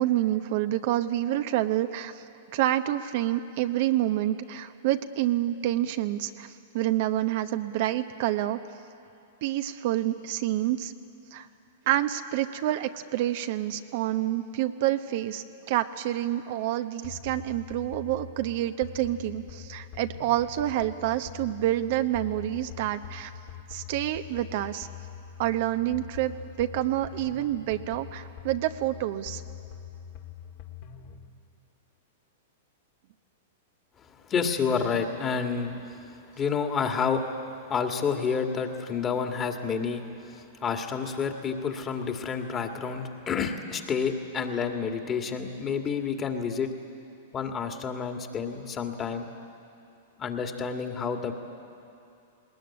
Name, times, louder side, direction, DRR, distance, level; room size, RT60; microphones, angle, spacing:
voice 1, 0.0-2.2 2.5-8.6 9.4-10.9 11.3-11.5 11.9-23.3 23.7-24.9 25.4-26.3 26.6-29.4, right 13 dB, 55° right, 8 dB, 0.9 m, -28 dB
sound 1, 17.0-31.3, left 9 dB, 50° left, 2.3 m, -44 dB
voice 2, 34.3-37.3 37.7-46.7 47.3-49.3 50.2-51.3, left 6 dB, 25° left, 4 dB, 2.2 m, -29 dB
20.0 x 19.5 x 9.9 m, 2.6 s
hypercardioid pair, 115°, 0 cm